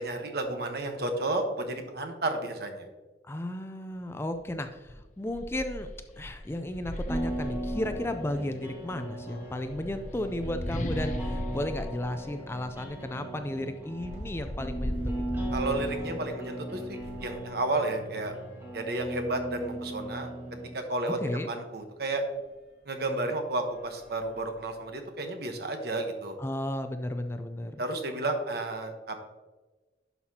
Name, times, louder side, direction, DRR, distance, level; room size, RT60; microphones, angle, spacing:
voice 1, 0.0-2.9 15.5-18.3 18.7-20.3 20.7-21.2 21.5-22.2 22.9-26.4 27.8-29.2, right 2 dB, 60° right, 5 dB, 1.1 m, -32 dB
voice 2, 3.2-5.9 6.2-15.2 21.2-21.5 26.4-27.8, left 1 dB, 15° left, 8 dB, 0.4 m, -34 dB
sound 1, 4.3-4.5 4.9-8.5 9.4-13.1, left 1 dB, 45° left, 0.8 m, -38 dB
sound 2, 7.1-7.2 7.4-7.5 7.9-17.4 18.1-19.4 20.1-20.2 20.4-20.5 22.2-22.4 23.0-23.2 23.6-24.9, equal, 75° left, 2.1 m, -41 dB
sound 3, 7.1-20.7, right 1 dB, 15° right, 2.0 m, -38 dB
11.0 x 5.8 x 2.8 m, 1.2 s
head